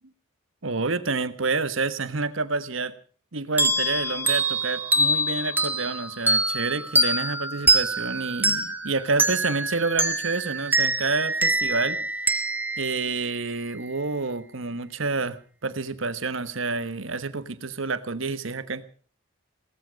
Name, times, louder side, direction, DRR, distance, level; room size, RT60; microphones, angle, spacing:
voice 1, 0.6-2.9 3.3-12.0 12.8-18.8, right 3 dB, 75° right, 13 dB, 1.3 m, -28 dB
sound 1, 3.6-13.9, right 2 dB, 10° right, 1.8 m, -25 dB
18.0 x 14.5 x 5.3 m, 0.42 s
head